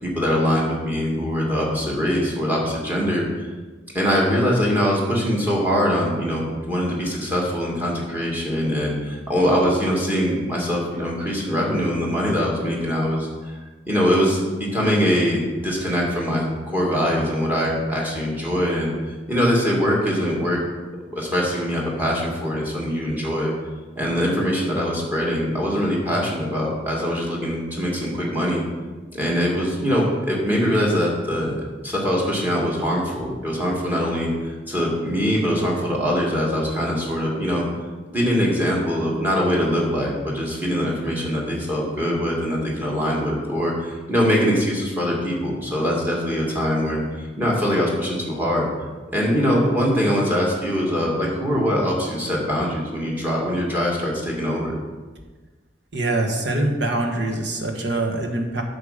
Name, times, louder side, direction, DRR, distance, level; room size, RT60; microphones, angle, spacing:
voice 1, 0.0-3.2 3.9-13.6 13.9-20.6 21.1-23.5 24.0-28.6 29.1-31.5 31.8-37.7 38.1-48.7 49.1-54.7, equal, 10° right, -3 dB, 2.1 m, -22 dB
voice 2, 55.9-58.6, right 2 dB, 70° right, 2 dB, 1.4 m, -24 dB
8.6 x 6.8 x 5.1 m, 1.3 s
head